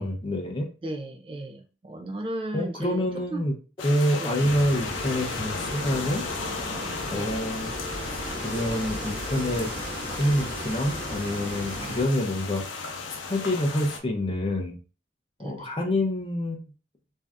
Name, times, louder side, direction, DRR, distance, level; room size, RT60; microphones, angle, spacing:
voice 1, 0.0-0.7 2.5-3.5 3.8-6.2 7.0-7.7 8.1-9.7 10.1-12.6 13.3-14.8 15.4-16.6, left 1 dB, 25° left, 3 dB, 0.5 m, -27 dB
voice 2, 0.8-3.0 3.3-3.4 4.2-4.5 7.1-7.3 11.8-12.0 15.4-15.7, right 1 dB, 30° right, 5 dB, 0.3 m, -35 dB
sound 1, 3.8-14.0, left 4 dB, 80° left, 0.6 m, -36 dB
sound 2, 4.4-12.0, equal, 50° right, 0.9 m, -36 dB
sound 3, 4.8-9.8, left 4 dB, 10° right, 0.8 m, -44 dB
2.6 x 2.3 x 3.3 m, 0.35 s
head